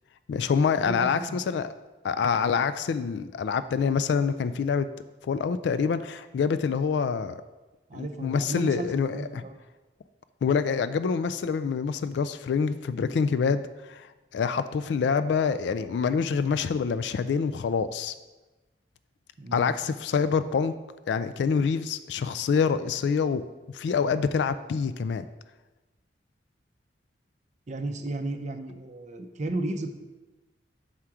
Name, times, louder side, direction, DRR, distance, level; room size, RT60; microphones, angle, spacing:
voice 1, 0.3-1.7 2.0-4.9 5.2-7.4 7.9-9.4 10.4-14.1 14.3-18.1 19.5-20.7 21.1-25.2, left 6 dB, 75° left, 13 dB, 0.3 m, -26 dB
voice 2, 0.9-1.6 7.9-9.5 19.4-19.7 27.7-29.9, right 2 dB, 40° right, 6 dB, 0.5 m, -34 dB
5.7 x 4.9 x 5.9 m, 1.2 s
head